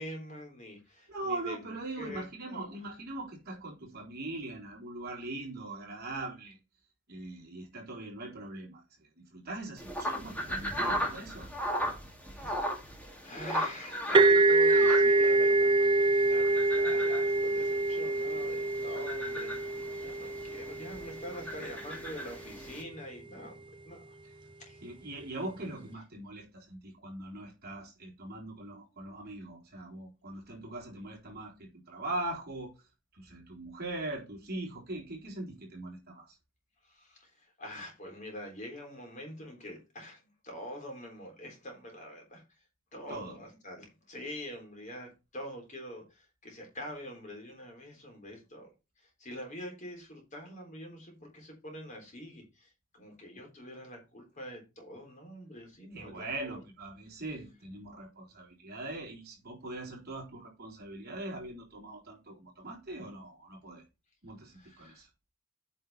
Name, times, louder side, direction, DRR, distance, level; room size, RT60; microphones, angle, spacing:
voice 1, 0.0-2.6 12.2-24.2 24.6-24.8 36.8-42.4 42.9-48.7 49.0-56.3 64.5-65.0, equal, 35° left, 3.7 m, -45 dB
voice 2, 1.1-6.6 7.1-11.5 24.8-32.7 33.1-36.4 43.1-43.3 55.9-63.8 64.2-65.1, right 2 dB, 45° right, 3.9 m, -41 dB
sound 1, 9.8-22.8, equal, 5° left, 2.3 m, -37 dB
sound 2, 14.1-21.7, right 2 dB, 25° right, 0.4 m, -25 dB
9.0 x 5.6 x 4.2 m
head